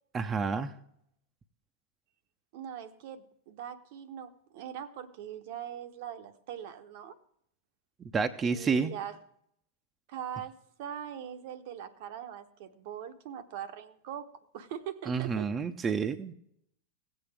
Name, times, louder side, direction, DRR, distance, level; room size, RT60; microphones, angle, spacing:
voice 1, 0.1-0.7 8.0-8.9 15.1-16.3, right 5 dB, 20° right, 6 dB, 0.7 m, -29 dB
voice 2, 2.5-7.2 8.4-9.2 10.1-14.3 14.5-15.5, right 9 dB, 50° right, 8 dB, 0.9 m, -41 dB
17.0 x 8.4 x 3.4 m, 0.70 s
figure-of-eight pair, 90°, 0 cm